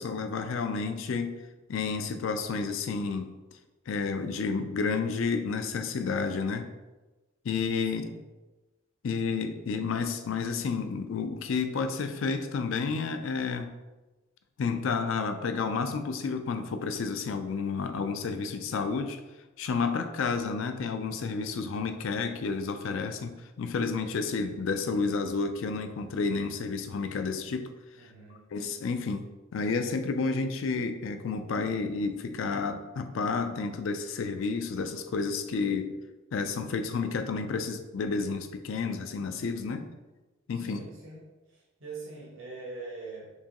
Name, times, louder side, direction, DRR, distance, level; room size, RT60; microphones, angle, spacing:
voice 1, 0.0-1.4 1.7-3.3 3.9-6.7 7.4-8.1 9.0-13.7 14.6-19.2 19.6-27.7 28.5-35.9 36.3-39.9 40.5-40.8, left 4 dB, 65° left, 8 dB, 0.4 m, -31 dB
voice 2, 7.8-8.1 28.0-28.5 40.5-43.3, right 3 dB, 70° right, -5 dB, 1.1 m, -43 dB
4.5 x 2.9 x 2.9 m, 1.1 s
head